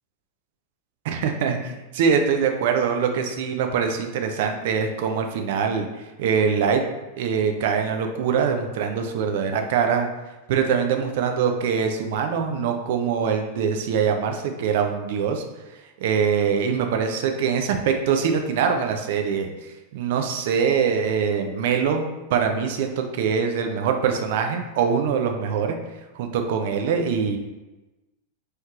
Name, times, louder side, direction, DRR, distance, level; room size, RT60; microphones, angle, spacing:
voice 1, 1.0-5.9 6.2-6.8 7.2-10.1 10.5-15.4 16.0-22.0 22.3-25.8 26.1-27.4, right 6 dB, 50° right, 5 dB, 0.4 m, -23 dB
3.2 x 3.0 x 2.4 m, 1.1 s
figure-of-eight pair, 90°, 0 cm